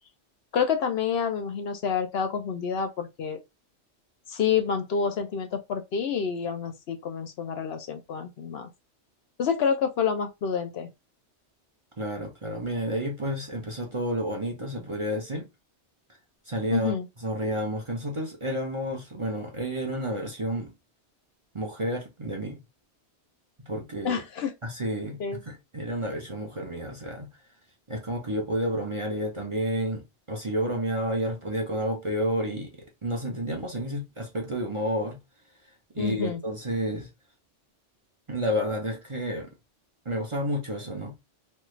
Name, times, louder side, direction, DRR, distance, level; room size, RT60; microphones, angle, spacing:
voice 1, 0.5-3.4 4.3-8.7 9.4-10.9 16.7-17.1 24.0-24.5 25.2-25.4 36.0-36.4, left 6 dB, 70° left, 0.8 m, -28 dB
voice 2, 12.0-15.5 16.5-16.9 17.2-20.7 21.5-22.6 23.6-24.2 24.6-27.3 27.9-35.2 35.9-37.1 38.3-39.5 40.0-41.2, equal, 30° right, 0.7 m, -30 dB
3.2 x 2.3 x 3.1 m
omnidirectional pair, 1.2 m